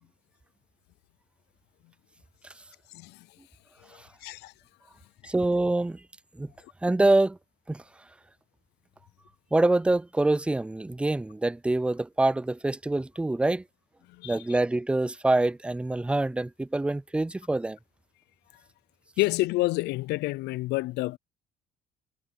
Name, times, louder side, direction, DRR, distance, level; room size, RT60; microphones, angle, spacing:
voice 1, 2.9-3.3 4.2-4.5 14.1-14.4 19.2-21.2, left 20 dB, 80° left, 0.4 m, -28 dB
voice 2, 5.2-6.0 6.4-6.5 6.8-7.4 7.7-7.8 9.5-13.6 14.2-17.8, right 2 dB, 5° right, 0.4 m, -25 dB
cardioid pair, 110°, 17 cm